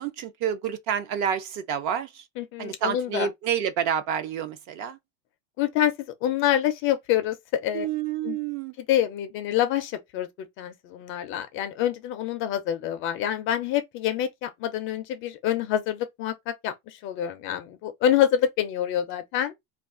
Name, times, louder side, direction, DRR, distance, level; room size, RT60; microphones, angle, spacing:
voice 1, 0.0-2.2 2.6-5.0 7.7-8.7, right 8 dB, 45° right, 0.5 m, -29 dB
voice 2, 2.4-3.3 5.6-5.9 6.2-7.9 8.2-8.4 8.8-19.5, left 11 dB, 35° left, 0.4 m, -26 dB
2.4 x 2.3 x 3.6 m
supercardioid pair, 145°, 38 cm